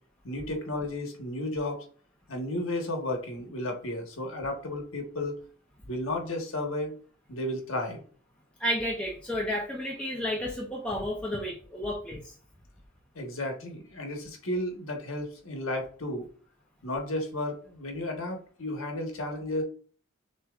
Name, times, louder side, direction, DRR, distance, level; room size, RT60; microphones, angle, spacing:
voice 1, 0.2-1.8 2.3-5.3 5.8-6.9 7.3-8.0 13.1-16.2 16.8-19.6, left 1 dB, 80° left, 2 dB, 1.2 m, -33 dB
voice 2, 8.6-12.3, equal, 5° left, -3 dB, 0.6 m, -31 dB
6.3 x 3.0 x 2.4 m, 0.43 s
head